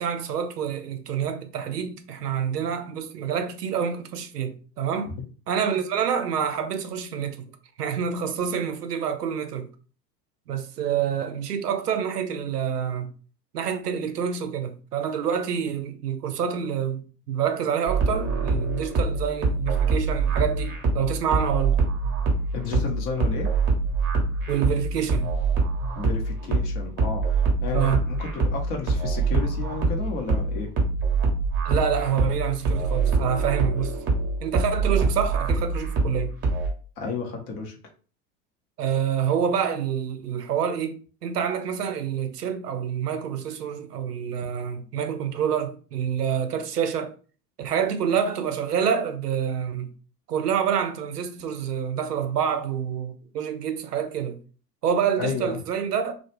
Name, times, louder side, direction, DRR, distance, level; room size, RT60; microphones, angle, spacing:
voice 1, 0.0-5.1 5.5-7.5 7.8-9.7 10.5-13.1 13.5-21.8 24.5-25.3 27.7-28.0 31.6-33.9 34.4-36.3 38.8-47.1 47.6-49.9 50.3-54.4 54.8-56.1, right 8 dB, 75° right, 0.6 m, -27 dB
sound 1, 17.9-36.7, right 3 dB, 25° right, 0.8 m, -24 dB
voice 2, 22.5-23.5 26.0-30.7 37.0-37.8 55.2-55.6, left 5 dB, 30° left, 0.7 m, -32 dB
2.3 x 2.0 x 3.0 m
figure-of-eight pair, 85°, 48 cm